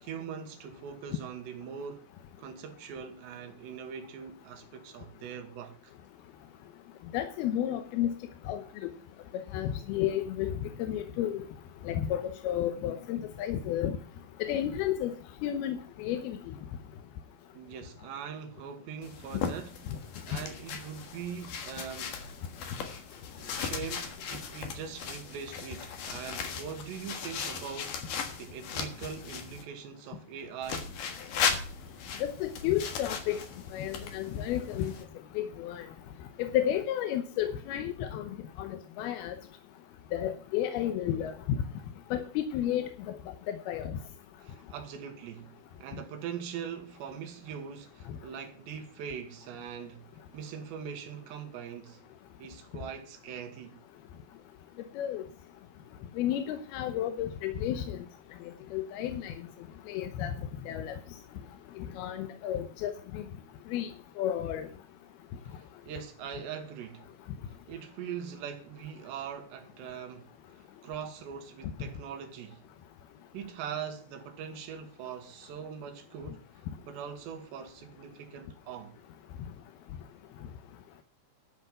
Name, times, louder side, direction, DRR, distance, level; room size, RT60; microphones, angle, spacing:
voice 1, 0.0-2.1 2.4-5.9 17.5-19.8 20.3-22.2 23.4-28.0 28.4-30.9 44.4-52.1 52.4-53.8 65.5-67.1 67.5-72.6 73.3-76.5 76.8-79.0, right 7 dB, 85° right, 3.5 m, -42 dB
voice 2, 7.1-8.1 8.5-8.9 9.5-10.5 10.8-11.4 11.9-14.0 14.4-15.1 15.4-16.4 32.2-33.4 33.7-34.9 35.4-35.9 36.4-39.4 40.1-41.6 42.1-43.2 43.5-44.0 55.0-55.2 56.2-58.0 58.7-59.3 59.9-60.3 60.7-61.0 61.8-63.3 63.7-63.9 64.2-64.7, left 11 dB, 75° left, 2.6 m, -32 dB
sound 1, 19.0-29.6 30.6-35.0, left 6 dB, 60° left, 2.8 m, -37 dB
12.5 x 5.9 x 7.8 m
omnidirectional pair, 4.9 m